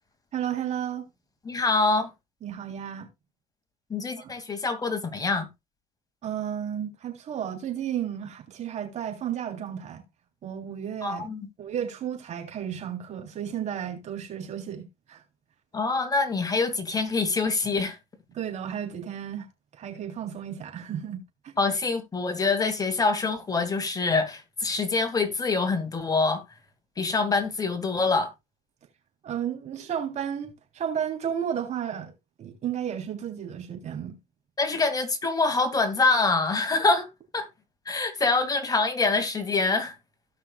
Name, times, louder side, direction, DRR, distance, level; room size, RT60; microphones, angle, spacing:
voice 1, 0.3-1.1 2.4-3.1 4.2-4.3 6.2-10.0 10.4-11.3 11.6-15.2 18.4-19.5 19.8-21.2 29.2-32.1 32.4-34.2, right 9 dB, 50° right, 3.5 m, -33 dB
voice 2, 1.4-2.1 3.9-5.5 11.0-11.5 15.7-18.0 21.6-26.4 27.0-28.3 34.6-37.1 37.3-37.5 37.9-39.9, left 3 dB, 25° left, 2.4 m, -25 dB
17.0 x 5.8 x 2.4 m
supercardioid pair, 85°, 15 cm